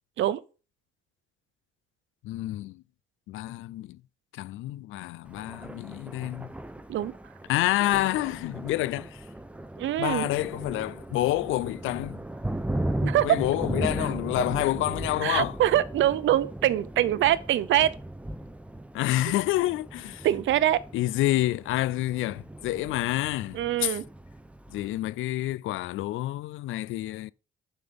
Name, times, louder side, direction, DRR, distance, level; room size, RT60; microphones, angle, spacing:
voice 1, 2.2-2.8 3.3-4.0 4.3-6.5 7.5-9.3 10.0-12.2 13.0-15.6 18.9-20.3 20.9-24.0 24.7-27.3, left 16 dB, 85° left, 0.4 m, -28 dB
Thunder, 5.3-25.0, right 1 dB, 5° right, 0.9 m, -37 dB
voice 2, 9.8-10.3 13.0-13.4 15.2-18.0 20.2-20.8 23.5-24.0, right 12 dB, 75° right, 0.7 m, -24 dB
7.8 x 5.6 x 5.3 m
cardioid pair, 90°, 20 cm